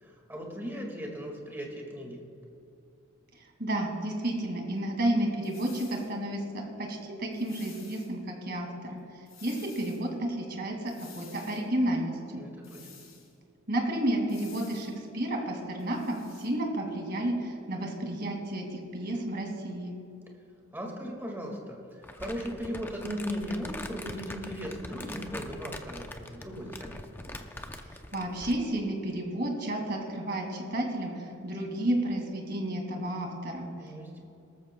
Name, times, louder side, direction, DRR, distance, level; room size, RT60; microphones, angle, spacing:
voice 1, 0.0-2.2 12.4-13.0 20.7-27.0 33.8-34.1, equal, 10° right, 0 dB, 1.8 m, -37 dB
voice 2, 3.6-9.0 9.4-12.4 13.7-19.9 28.1-33.7, right 1 dB, 45° right, 1 dB, 2.2 m, -31 dB
sound 1, 5.4-6.1 7.3-8.1 9.3-10.0 10.9-11.6 12.6-13.3 14.3-15.0 15.8-16.5, left 6 dB, 70° left, 3.3 m, -52 dB
Crumpling crinkling, 22.0-28.7, left 1 dB, 10° left, 0.5 m, -43 dB
19.0 x 13.5 x 2.2 m, 2.7 s
head